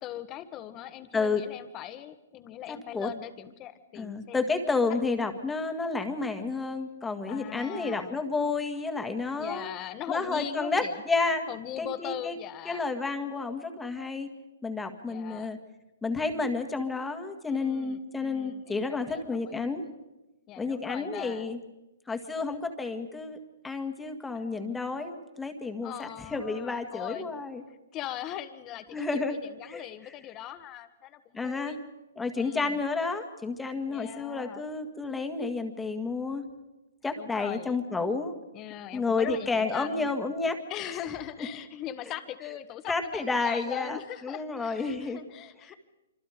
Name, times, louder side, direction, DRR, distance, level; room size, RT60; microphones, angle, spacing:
voice 1, 0.0-4.5 7.3-8.2 9.4-11.0 11.5-12.8 15.0-15.6 17.5-19.7 20.5-21.6 24.3-24.8 25.8-27.4 27.7-31.8 32.4-32.8 33.9-34.6 37.1-37.8 38.5-40.1 40.7-45.7, left 12 dB, 25° left, 10 dB, 1.4 m, -40 dB
voice 2, 4.0-9.7 10.1-11.5 11.8-12.3 12.7-14.3 14.6-15.6 16.0-19.8 20.6-21.6 22.1-23.4 23.6-27.6 28.9-29.4 29.6-29.8 31.3-31.8 32.2-36.4 37.0-38.3 38.9-40.6 42.9-45.2, left 4 dB, 5° left, 6 dB, 1.9 m, -30 dB
26.0 x 25.5 x 5.1 m, 1.0 s
hypercardioid pair, 150°, 0 cm